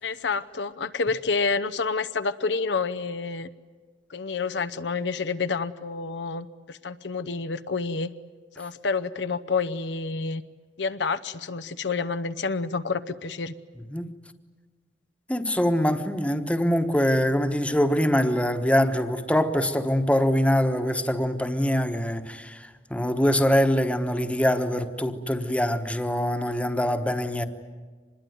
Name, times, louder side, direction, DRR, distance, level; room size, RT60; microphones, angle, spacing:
voice 1, 0.0-3.5 4.1-8.1 8.6-10.4 10.8-13.5, left 4 dB, 70° left, 0.7 m, -28 dB
voice 2, 15.3-27.4, equal, 5° left, 1.2 m, -24 dB
25.5 x 21.0 x 9.4 m
head